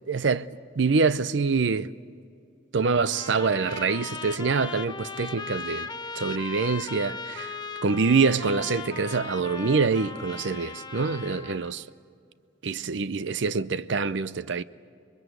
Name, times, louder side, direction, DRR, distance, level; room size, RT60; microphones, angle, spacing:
voice 1, 0.1-0.5 0.8-1.9 2.7-5.9 6.2-7.5 7.8-11.8 12.6-14.6, right 4 dB, 65° right, 0.6 m, -25 dB
Trumpet, 2.8-11.7, left 4 dB, 25° left, 0.8 m, -38 dB
26.5 x 22.0 x 8.0 m
head